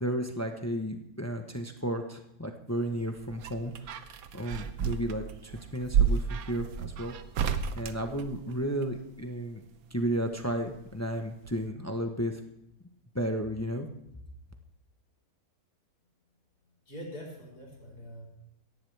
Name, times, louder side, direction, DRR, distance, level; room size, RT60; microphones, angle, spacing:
voice 1, 0.0-3.7 4.3-7.1 7.8-9.6 9.9-12.3 13.1-13.9, right 1 dB, 15° left, 4 dB, 0.8 m, -33 dB
sound 1, 2.9-8.9 10.3-11.2 11.4-11.5, right 7 dB, 70° right, 1.2 m, -31 dB
voice 2, 16.9-18.3, equal, 85° left, -3 dB, 4.7 m, -43 dB
18.0 x 14.0 x 3.4 m, 0.81 s
omnidirectional pair, 1.6 m